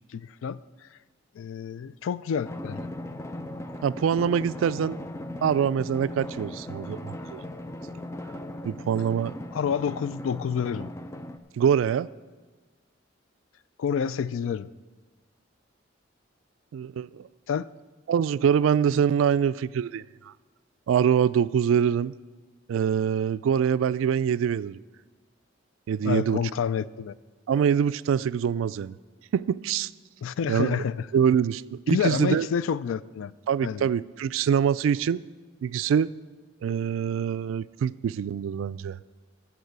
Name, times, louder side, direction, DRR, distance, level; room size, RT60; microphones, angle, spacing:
voice 1, 0.1-0.6 1.4-2.9 9.5-10.9 13.8-14.7 17.5-17.7 26.0-27.1 30.2-31.1 31.9-33.3 33.6-33.9, left 7 dB, 85° left, 0.3 m, -28 dB
Drum, 2.4-11.4, left 1 dB, 15° left, 0.4 m, -38 dB
voice 2, 3.8-5.0 5.4-7.4 8.6-9.3 11.6-12.1 16.7-17.3 18.1-20.3 20.9-22.1 22.7-24.8 25.9-26.4 27.5-28.9 29.3-29.9 30.5-30.8 31.1-32.5 33.5-35.2 35.6-36.1 36.6-39.0, right 8 dB, 85° right, 0.3 m, -24 dB
13.5 x 4.7 x 8.0 m
head